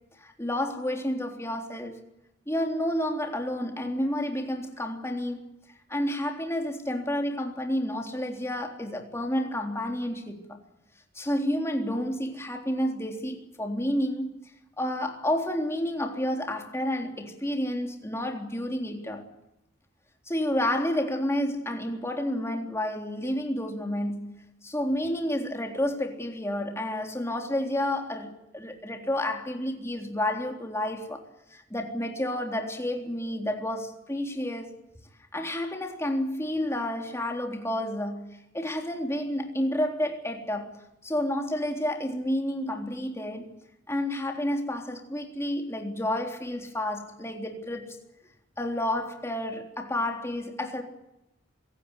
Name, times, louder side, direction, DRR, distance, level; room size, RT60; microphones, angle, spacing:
voice 1, 0.2-2.0 2.5-5.5 5.9-10.6 11.2-14.3 14.8-19.3 20.3-31.2 31.5-34.7 35.3-43.5 43.9-48.0 48.6-50.8, left 1 dB, 15° left, 3.6 m, -30 dB
26.0 x 17.5 x 9.8 m
head